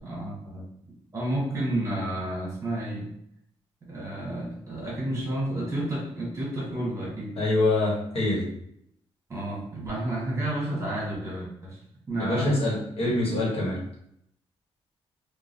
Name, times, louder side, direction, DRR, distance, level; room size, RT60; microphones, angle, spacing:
voice 1, 0.0-0.6 1.1-3.1 3.9-7.4 9.3-11.8 12.1-12.5 13.0-13.3, right 1 dB, 30° right, -5 dB, 1.2 m, -31 dB
voice 2, 7.4-8.5 12.2-13.8, left 2 dB, 65° left, -4 dB, 1.1 m, -25 dB
3.0 x 2.2 x 2.5 m, 0.71 s
cardioid pair, 110°, 11 cm